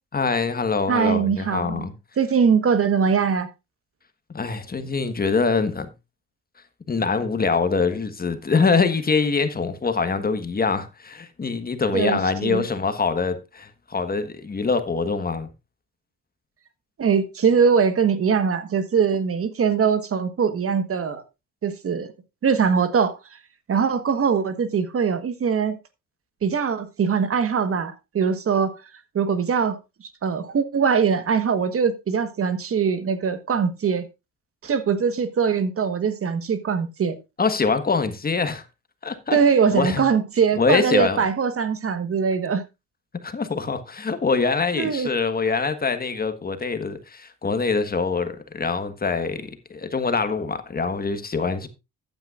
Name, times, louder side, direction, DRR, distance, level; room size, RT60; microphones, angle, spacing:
voice 1, 0.1-1.9 4.3-5.9 6.9-15.5 37.4-38.7 39.0-39.4 39.7-40.0 40.6-41.2 43.2-51.7, left 4 dB, 30° left, 1.4 m, -24 dB
voice 2, 0.9-1.9 2.2-3.5 11.9-12.6 17.0-21.2 21.6-22.1 22.4-23.1 23.7-25.8 26.4-28.7 29.1-29.8 30.2-34.0 34.6-37.2 39.3-42.6 44.8-45.1, right 6 dB, 50° right, 1.3 m, -22 dB
14.0 x 9.1 x 2.4 m
cardioid pair, 90°, 30 cm